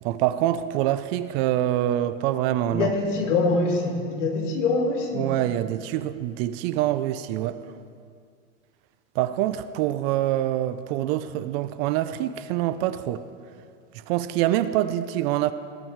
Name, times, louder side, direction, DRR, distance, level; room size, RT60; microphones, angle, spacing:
voice 1, 0.0-2.9 5.1-7.6 9.1-13.2 13.9-15.5, right 13 dB, 55° right, 13 dB, 0.6 m, -25 dB
voice 2, 2.7-5.3, left 3 dB, 75° left, 2 dB, 2.2 m, -24 dB
18.0 x 6.1 x 4.6 m, 2.2 s
hypercardioid pair, 115°, 37 cm